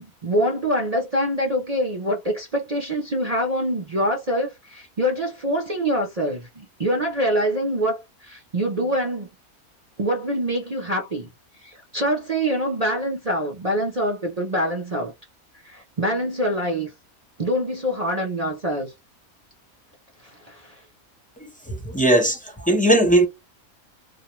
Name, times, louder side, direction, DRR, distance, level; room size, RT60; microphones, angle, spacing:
voice 1, 0.0-9.3 10.0-11.3 11.6-15.1 15.6-16.9 17.4-18.9 20.2-20.8, equal, 40° right, 0.5 m, -25 dB
voice 2, 21.7-23.3, right 1 dB, 10° left, 0.4 m, -18 dB
2.4 x 2.2 x 2.9 m
omnidirectional pair, 1.5 m